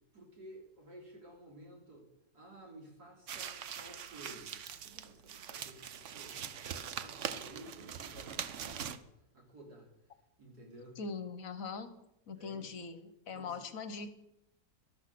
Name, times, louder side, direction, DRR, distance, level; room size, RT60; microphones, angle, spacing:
voice 1, 0.1-2.1 2.3-9.1 9.3-10.1 10.4-11.0 12.3-12.7 13.3-13.6, right 1 dB, 90° right, 0 dB, 3.9 m, -54 dB
sound 1, 3.3-9.0, right 8 dB, 60° right, 1.0 m, -42 dB
voice 2, 11.0-11.9 12.3-14.1, left 5 dB, 60° left, 11 dB, 1.4 m, -41 dB
12.5 x 12.5 x 6.0 m, 0.81 s
omnidirectional pair, 1.6 m